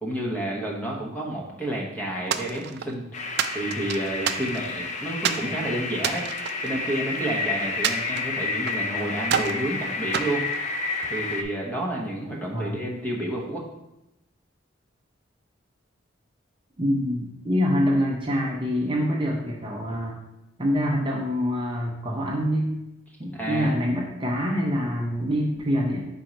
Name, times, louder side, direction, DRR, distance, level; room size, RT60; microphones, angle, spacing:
voice 1, 0.0-3.1 3.5-6.3 6.6-10.5 11.1-13.6 23.3-23.7, right 1 dB, 10° left, -2 dB, 1.0 m, -30 dB
sound 1, 2.3-3.0 3.4-4.8 5.2-5.5 6.0-7.3 7.8-8.9 9.2-9.6 10.1-11.2, right 8 dB, 55° right, 0.3 m, -29 dB
sound 2, 3.1-11.4, left 3 dB, 35° left, 0.4 m, -30 dB
voice 2, 16.8-20.2 20.6-22.7 23.2-26.0, equal, 25° right, -1 dB, 0.7 m, -25 dB
4.5 x 4.3 x 5.1 m, 0.90 s
head